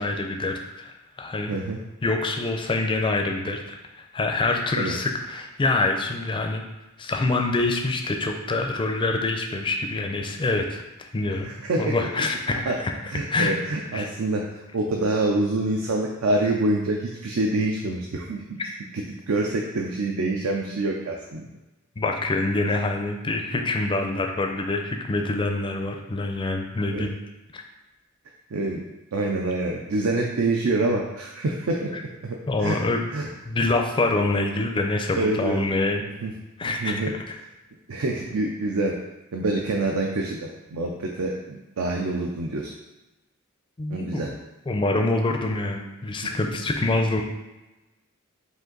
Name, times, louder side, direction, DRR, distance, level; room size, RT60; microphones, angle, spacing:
voice 1, 0.0-1.5 2.0-6.6 7.0-11.5 11.8-12.9 13.3-13.5 13.9-14.1 22.0-27.2 27.5-27.6 32.5-33.0 33.5-36.0 36.6-37.0 43.8-44.4 44.7-47.2, left 2 dB, 25° left, 3 dB, 0.4 m, -25 dB
voice 2, 1.5-1.8 4.8-5.0 11.4-12.7 13.1-14.4 14.7-18.4 18.9-21.5 26.9-27.1 28.5-28.8 29.1-31.9 32.2-32.8 33.1-33.3 35.2-35.6 36.0-36.3 36.6-37.1 37.9-38.9 39.3-42.7 43.9-44.3 46.3-46.4, right 2 dB, 75° right, 0 dB, 0.5 m, -26 dB
5.1 x 2.5 x 3.9 m, 1.1 s
head